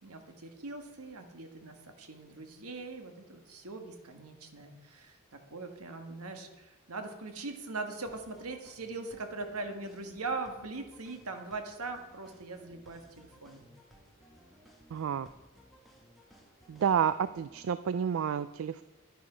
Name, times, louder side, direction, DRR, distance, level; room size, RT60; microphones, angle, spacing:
voice 1, 0.0-5.2 5.5-13.6, right 3 dB, 80° right, 5 dB, 1.5 m, -41 dB
sound 1, 8.1-17.7, equal, ahead, 1.8 m, -60 dB
voice 2, 14.9-15.3 16.7-18.8, right 8 dB, 60° right, 14 dB, 0.3 m, -30 dB
10.5 x 10.5 x 5.0 m, 1.1 s
head